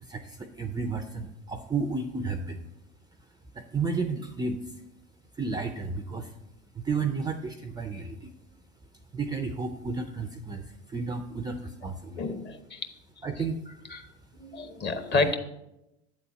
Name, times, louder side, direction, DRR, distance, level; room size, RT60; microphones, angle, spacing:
voice 1, 0.0-2.7 3.5-4.6 5.4-6.3 6.7-8.3 9.1-12.2 13.2-13.6 15.1-15.2, right 4 dB, 10° right, 6 dB, 0.4 m, -32 dB
voice 2, 12.2-12.9 13.9-14.1 14.4-15.4, left 3 dB, 30° left, 8 dB, 0.9 m, -29 dB
8.2 x 4.1 x 5.6 m, 0.89 s
hypercardioid pair, 100°, 35 cm